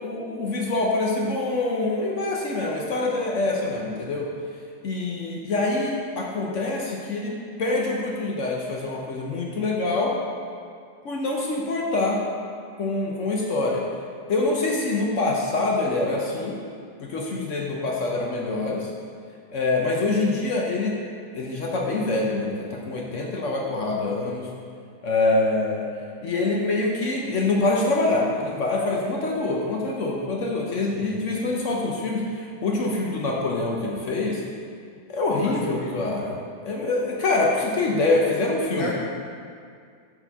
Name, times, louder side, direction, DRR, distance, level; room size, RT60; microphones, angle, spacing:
voice 1, 0.0-4.3 4.8-10.1 11.0-12.2 12.8-13.8 14.3-16.6 17.0-18.9 19.5-21.0 21.3-24.5 25.0-25.9 26.2-32.2 32.6-34.4 35.1-36.3 36.6-38.9, left 2 dB, 60° left, -1 dB, 0.8 m, -25 dB
voice 2, 30.9-31.2 35.4-36.1 38.8-38.9, left 1 dB, 30° left, -4 dB, 0.5 m, -33 dB
6.8 x 4.3 x 5.5 m, 2.2 s
omnidirectional pair, 2.0 m